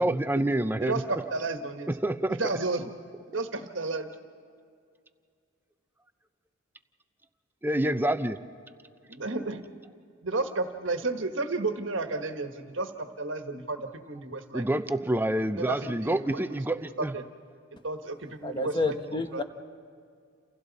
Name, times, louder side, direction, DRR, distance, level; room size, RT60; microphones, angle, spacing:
voice 1, 0.0-0.9 2.0-2.4 7.6-8.4 14.5-17.1, right 1 dB, 10° right, 11 dB, 0.6 m, -27 dB
voice 2, 0.8-1.9 2.3-2.8 3.3-4.1 9.1-9.8 10.2-14.6 15.5-17.2 17.8-19.4, right 3 dB, 65° right, 7 dB, 1.5 m, -32 dB
voice 3, 18.4-19.4, left 2 dB, 25° left, 7 dB, 1.0 m, -29 dB
29.5 x 28.0 x 4.1 m, 2.2 s
head